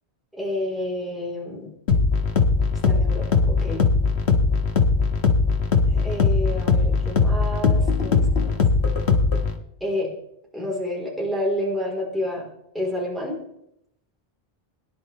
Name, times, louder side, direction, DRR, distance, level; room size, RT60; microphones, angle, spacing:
voice 1, 0.4-1.7 2.8-3.8 5.9-8.6 9.8-10.1 10.5-12.5 12.7-13.4, left 1 dB, ahead, -3 dB, 3.9 m, -29 dB
sound 1, 1.9-9.5, left 4 dB, 90° left, 1.6 m, -20 dB
22.0 x 10.5 x 3.4 m, 0.78 s
omnidirectional pair, 1.1 m